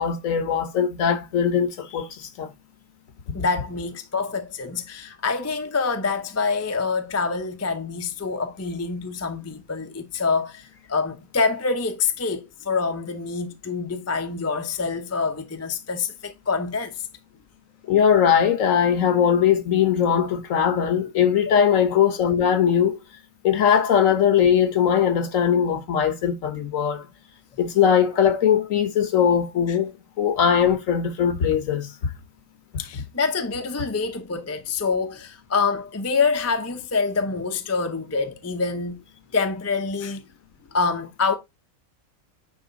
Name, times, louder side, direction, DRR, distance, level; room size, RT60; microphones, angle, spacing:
voice 1, 0.0-2.5 17.9-23.0 23.4-27.1 27.6-29.9 30.2-32.1, left 8 dB, 65° left, 1.4 m, -20 dB
voice 2, 3.3-17.0 21.5-21.7 29.7-29.8 32.8-39.0 39.3-40.2 40.7-41.4, left 4 dB, 15° left, 0.6 m, -26 dB
9.4 x 3.4 x 4.0 m
omnidirectional pair, 1.5 m